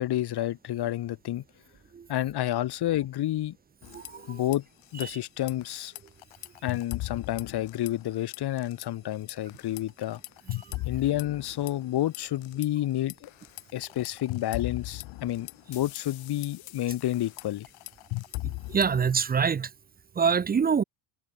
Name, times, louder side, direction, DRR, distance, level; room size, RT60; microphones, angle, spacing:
voice 1, 0.0-1.4 2.1-3.5 4.3-4.6 4.9-5.9 6.6-10.2 10.9-13.3 13.7-17.7, left 13 dB, 50° left, 2.7 m, -30 dB
sound 1, 3.8-4.6 4.8-5.0 5.4-8.1 8.3-8.9 9.3-12.7 13.1-19.1, left 21 dB, 70° left, 3.6 m, -38 dB
voice 2, 3.9-4.4 5.0-5.1 10.5-10.6 18.7-19.7 20.2-20.8, right 6 dB, 20° right, 0.7 m, -25 dB
supercardioid pair, 110°, 49 cm